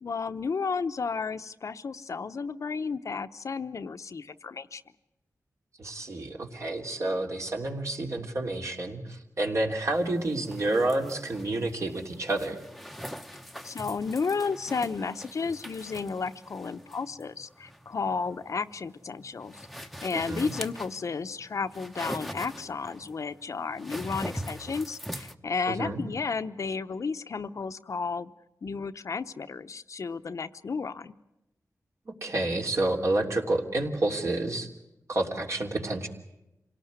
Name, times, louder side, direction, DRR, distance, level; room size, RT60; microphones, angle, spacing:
voice 1, 0.0-4.8 13.6-19.6 20.0-28.3 28.6-31.1, left 5 dB, 60° left, 10 dB, 0.8 m, -33 dB
voice 2, 5.8-12.6 20.1-20.5 25.7-26.0 32.1-34.7 35.1-36.1, right 2 dB, 55° right, 2 dB, 3.2 m, -29 dB
sound 1, 9.9-25.3, equal, ahead, 0.9 m, -42 dB
27.0 x 18.0 x 9.5 m, 0.91 s
wide cardioid pair, 95°, 6 cm